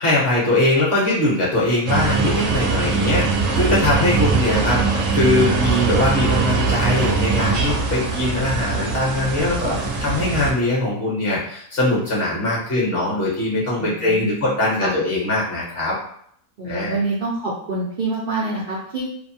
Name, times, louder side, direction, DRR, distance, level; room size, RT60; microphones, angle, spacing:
voice 1, 0.0-16.0 16.6-17.0, left 2 dB, 45° left, -5 dB, 0.9 m, -21 dB
sound 1, 1.9-10.5, right 4 dB, 65° right, 0.8 m, -21 dB
voice 2, 13.8-14.4 14.8-14.9 16.6-19.0, right 2 dB, 85° right, -6 dB, 0.4 m, -26 dB
2.7 x 2.2 x 2.6 m, 0.67 s
omnidirectional pair, 1.6 m